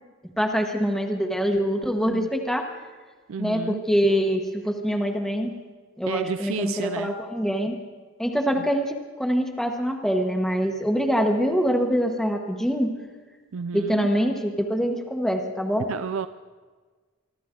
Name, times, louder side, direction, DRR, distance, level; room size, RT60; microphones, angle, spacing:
voice 1, 0.4-2.7 3.4-5.5 6.0-7.8 8.2-12.9 13.7-15.9, equal, ahead, 2 dB, 1.2 m, -24 dB
voice 2, 3.3-3.8 6.1-7.1 13.5-14.1 15.9-16.3, right 6 dB, 75° right, 12 dB, 0.4 m, -31 dB
25.0 x 13.0 x 3.7 m, 1.4 s
head